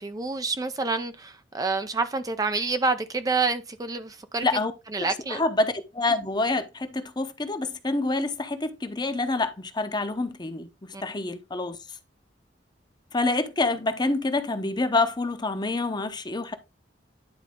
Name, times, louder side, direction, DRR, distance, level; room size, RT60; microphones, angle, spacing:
voice 1, 0.0-4.5 4.9-5.4 10.9-11.0, right 4 dB, 20° right, 0.5 m, -28 dB
voice 2, 5.0-10.7 11.0-11.8 13.1-16.6, left 2 dB, 25° left, 0.8 m, -27 dB
10.5 x 4.0 x 3.7 m
head